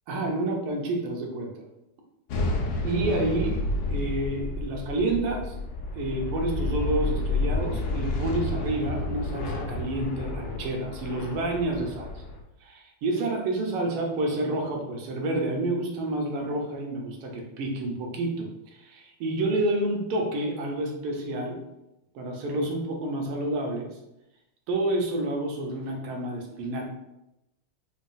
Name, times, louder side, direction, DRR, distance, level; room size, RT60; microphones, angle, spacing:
voice 1, 0.1-1.5 2.8-3.6 3.9-5.5 6.0-12.2 12.6-21.6 22.1-23.9 24.7-26.9, right 2 dB, 85° right, 1 dB, 1.6 m, -29 dB
sound 1, 2.3-12.4, left 2 dB, 85° left, 0.8 m, -30 dB
5.0 x 2.6 x 2.3 m, 0.90 s
omnidirectional pair, 2.3 m